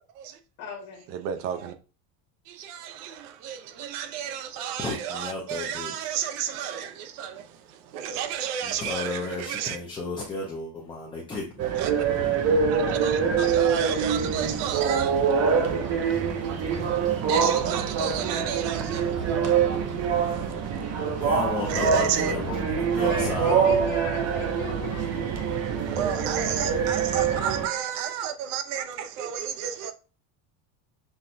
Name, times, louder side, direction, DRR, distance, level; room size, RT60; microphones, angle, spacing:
voice 1, 0.6-1.0 23.0-25.1, left 7 dB, 60° left, 1.4 m, -36 dB
voice 2, 1.1-1.7 2.5-9.8 11.8-11.9 12.7-21.4 21.7-22.3 25.9-29.9, right 9 dB, 90° right, 0.8 m, -33 dB
voice 3, 4.8-6.1 8.6-11.7 21.0-23.6, left 3 dB, 10° left, 0.4 m, -33 dB
sound 1, 11.6-27.7, right 6 dB, 35° right, 0.5 m, -25 dB
5.9 x 2.2 x 2.6 m
cardioid pair, 160°, 45 cm